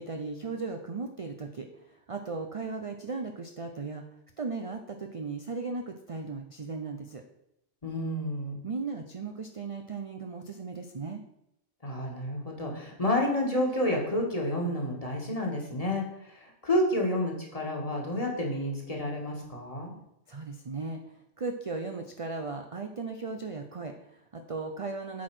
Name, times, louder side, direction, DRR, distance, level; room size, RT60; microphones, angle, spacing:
voice 1, 0.0-4.0 4.4-7.2 8.6-11.2 20.3-25.2, right 4 dB, 35° right, 5 dB, 0.5 m, -37 dB
voice 2, 7.8-8.6 11.8-19.9, left 1 dB, 30° left, 0 dB, 1.9 m, -30 dB
8.1 x 4.7 x 6.1 m, 0.82 s
omnidirectional pair, 1.3 m